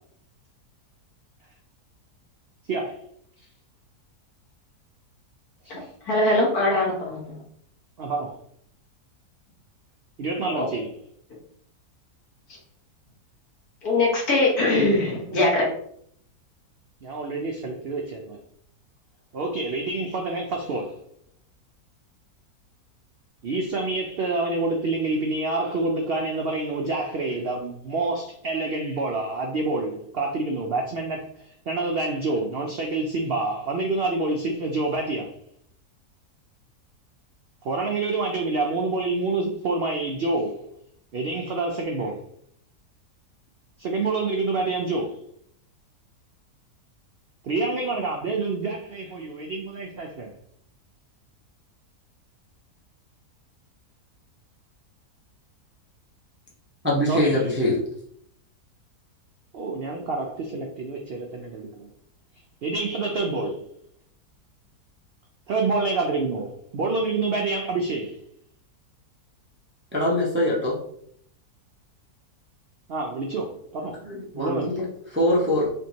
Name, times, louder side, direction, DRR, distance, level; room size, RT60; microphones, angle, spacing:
voice 1, 6.1-7.4 10.4-10.7 13.8-15.7, left 2 dB, 70° left, 1.8 m, -22 dB
voice 2, 8.0-8.4 10.2-10.9 17.0-18.4 19.3-21.0 23.4-31.2 31.7-35.3 37.6-40.6 41.1-42.2 43.8-45.1 47.4-50.3 57.1-57.5 59.5-61.9 62.6-63.6 65.5-68.2 72.9-74.0 74.3-74.8, right 3 dB, 75° right, 0.5 m, -27 dB
voice 3, 56.8-57.8 69.9-70.8 74.0-75.7, left 1 dB, 10° right, 0.6 m, -23 dB
4.4 x 3.0 x 2.8 m
omnidirectional pair, 1.7 m